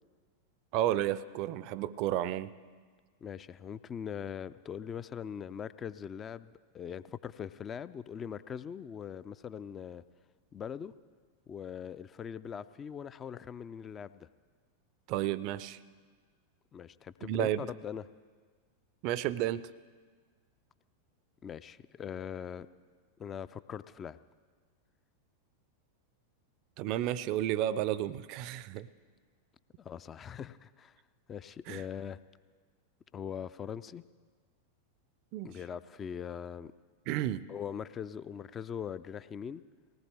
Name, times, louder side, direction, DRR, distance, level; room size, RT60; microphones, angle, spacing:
voice 1, 0.7-2.5 15.1-15.8 17.2-17.7 19.0-19.7 26.8-28.9 31.7-31.8 35.3-35.5 37.1-37.5, right 12 dB, 40° right, 19 dB, 0.5 m, -32 dB
voice 2, 3.2-10.0 10.5-10.9 11.5-14.3 16.7-18.0 21.4-22.7 23.2-24.2 29.8-31.0 31.3-32.2 33.1-34.0 35.4-36.7 37.5-39.6, left 8 dB, 25° left, 15 dB, 0.4 m, -41 dB
19.5 x 17.5 x 3.4 m, 1.5 s
figure-of-eight pair, 90°, 0 cm